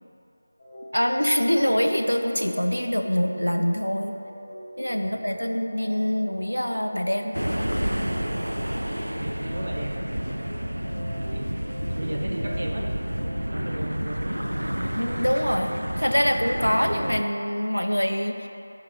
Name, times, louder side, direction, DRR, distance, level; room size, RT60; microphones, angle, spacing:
sound 1, 0.6-13.9, equal, 40° left, 1.0 m, -44 dB
voice 1, 0.9-4.1 4.8-7.4 7.8-8.0 15.0-15.7 16.0-18.5, equal, 90° left, 5 dB, 0.6 m, -24 dB
voice 2, 5.0-5.3 8.5-10.9 11.2-11.5 11.8-13.2 13.5-14.8, right 1 dB, 55° right, 0 dB, 0.8 m, -37 dB
sound 2, 7.3-17.2, equal, 85° right, 0.3 m, -29 dB
10.5 x 3.7 x 3.1 m, 2.7 s
figure-of-eight pair, 165°, 0 cm